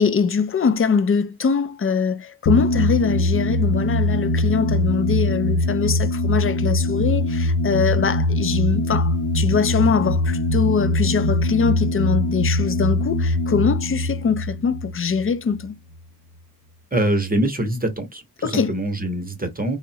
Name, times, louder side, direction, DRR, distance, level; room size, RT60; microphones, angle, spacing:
voice 1, 0.0-15.8 18.4-18.7, left 5 dB, 40° left, 0.4 m, -22 dB
sound 1, 2.5-15.7, left 1 dB, 80° left, 0.6 m, -22 dB
voice 2, 16.9-19.8, right 1 dB, 25° right, 0.9 m, -24 dB
3.5 x 2.1 x 2.7 m
wide cardioid pair, 90°, 35 cm